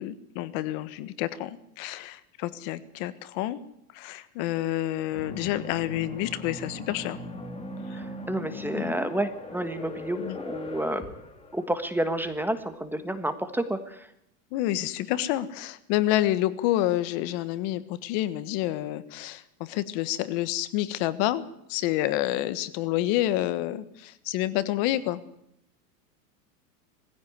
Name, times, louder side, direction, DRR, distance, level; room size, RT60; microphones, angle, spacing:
voice 1, 0.0-3.6 3.9-7.2 8.7-9.0 10.2-10.4 14.5-21.4 21.7-25.2, left 14 dB, 50° left, 14 dB, 1.5 m, -28 dB
sound 1, 5.1-12.3, left 2 dB, 15° left, 3.3 m, -39 dB
voice 2, 7.9-11.0 11.5-14.1, right 1 dB, 5° right, 10 dB, 1.4 m, -30 dB
20.5 x 15.5 x 9.6 m, 0.76 s
supercardioid pair, 140°, 45 cm